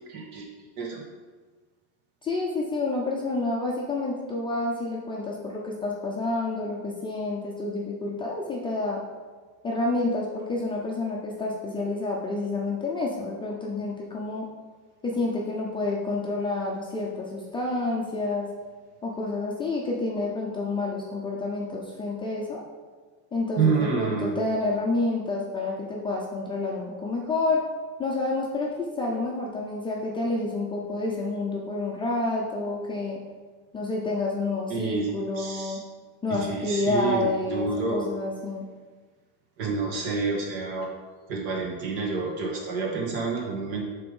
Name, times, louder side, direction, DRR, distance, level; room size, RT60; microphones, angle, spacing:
voice 1, 0.1-0.5 0.8-1.0 23.6-24.4 34.7-35.1 35.4-35.8 36.3-38.1 39.6-40.9 41.3-43.8, right 4 dB, 75° right, -1 dB, 1.8 m, -28 dB
voice 2, 2.2-9.0 9.6-14.5 15.0-18.5 19.0-22.6 23.3-27.6 28.0-33.2 33.7-35.9 36.2-38.7, left 2 dB, 15° left, -4 dB, 0.3 m, -29 dB
6.8 x 3.4 x 5.3 m, 1.4 s
cardioid pair, 165°, 43 cm